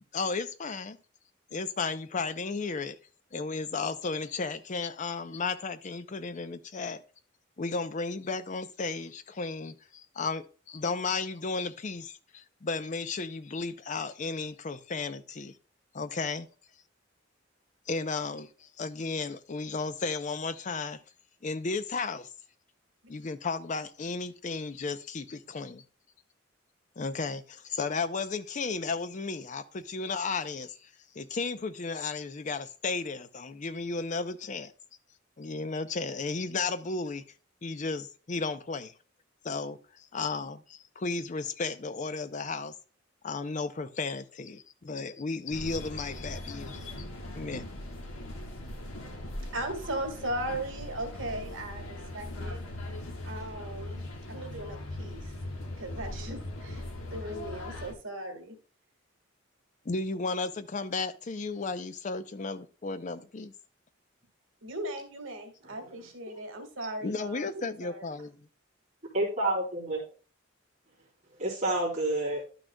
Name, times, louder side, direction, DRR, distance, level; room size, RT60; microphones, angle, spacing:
voice 1, 0.1-1.0 1.5-3.0 3.3-7.0 7.6-15.5 15.9-16.5 17.9-21.0 21.4-22.3 23.1-25.8 27.0-30.9 31.2-34.7 35.4-37.2 37.6-38.9 39.4-42.7 43.2-46.8 47.4-47.6 59.9-63.5 67.0-68.5, left 4 dB, 40° left, 0.5 m, -34 dB
sound 1, 45.5-57.9, left 1 dB, 85° left, 1.4 m, -40 dB
voice 2, 49.5-52.6 53.2-54.0 54.3-55.3 55.8-58.6 64.6-68.1, right 1 dB, 75° right, 1.6 m, -38 dB
voice 3, 69.1-70.0 71.4-72.5, right 2 dB, 35° right, 2.6 m, -29 dB
11.5 x 6.2 x 2.2 m
head